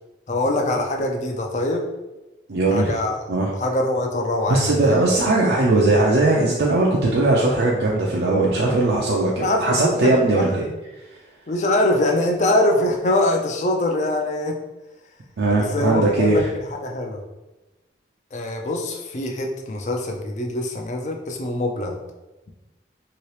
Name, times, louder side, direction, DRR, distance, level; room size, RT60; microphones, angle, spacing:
voice 1, 0.3-1.8 2.7-3.2 3.6-5.0 9.4-10.4 11.5-14.6 15.7-16.4 16.7-17.2 18.3-22.0, left 1 dB, 40° left, 2 dB, 0.4 m, -23 dB
voice 2, 2.5-3.0 3.3-3.5 4.5-10.7 15.4-16.5, right 2 dB, 70° right, -3 dB, 0.4 m, -19 dB
2.9 x 2.8 x 3.1 m, 1.1 s
head